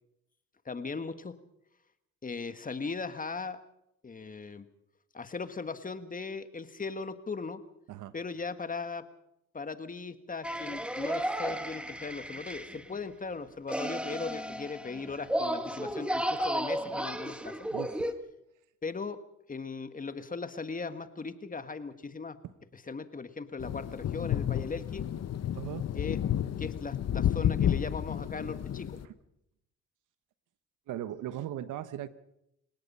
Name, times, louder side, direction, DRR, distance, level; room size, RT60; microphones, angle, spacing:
voice 1, 0.6-1.4 2.2-3.6 4.0-4.6 5.1-7.6 8.1-9.0 9.5-17.7 18.8-19.2 19.5-22.4 22.9-25.0 25.9-26.2 26.6-29.0, left 4 dB, 25° left, 10 dB, 1.6 m, -38 dB
sound 1, 10.4-12.9 13.7-18.1, right 1 dB, 5° right, 1.5 m, -34 dB
voice 2, 17.7-18.2 22.4-22.5 25.5-25.9 29.0-29.1 30.9-32.1, right 12 dB, 85° right, 14 dB, 1.2 m, -38 dB
sound 2, 23.6-29.1, left 10 dB, 55° left, 1.1 m, -31 dB
28.5 x 18.0 x 5.6 m, 0.80 s
cardioid pair, 90°, 30 cm